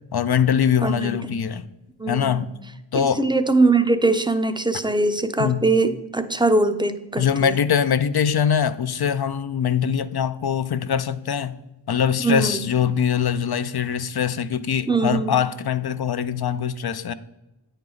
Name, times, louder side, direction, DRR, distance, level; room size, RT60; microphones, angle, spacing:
voice 1, 0.1-1.6 2.1-2.5 2.9-3.2 5.4-5.7 7.2-11.5 11.9-17.1, left 8 dB, 60° left, 0.5 m, -22 dB
voice 2, 0.8-1.4 2.0-2.5 3.0-7.6 12.2-12.7 14.9-15.4, right 3 dB, 10° right, 0.5 m, -22 dB
9.1 x 4.5 x 3.8 m
wide cardioid pair, 45°, 45 cm